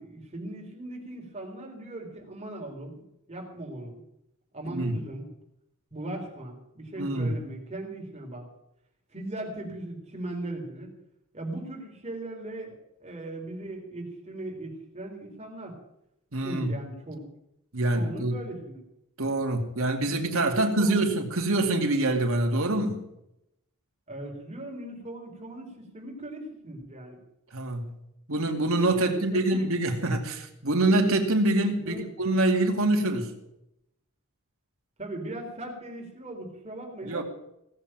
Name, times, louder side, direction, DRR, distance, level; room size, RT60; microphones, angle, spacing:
voice 1, 0.0-3.0 3.3-4.0 4.5-5.2 5.9-8.5 9.1-11.0 11.3-12.7 13.0-15.7 16.4-17.2 17.9-18.8 20.5-21.0 24.1-27.2 29.0-29.7 31.8-32.1 35.0-37.2, right 1 dB, 30° right, 0 dB, 4.1 m, -38 dB
voice 2, 4.7-5.0 7.0-7.4 16.3-16.7 17.7-18.3 19.2-23.1 27.5-27.9 28.3-33.4 37.0-37.2, right 2 dB, 65° right, 3 dB, 2.5 m, -25 dB
18.0 x 7.8 x 9.0 m, 0.82 s
head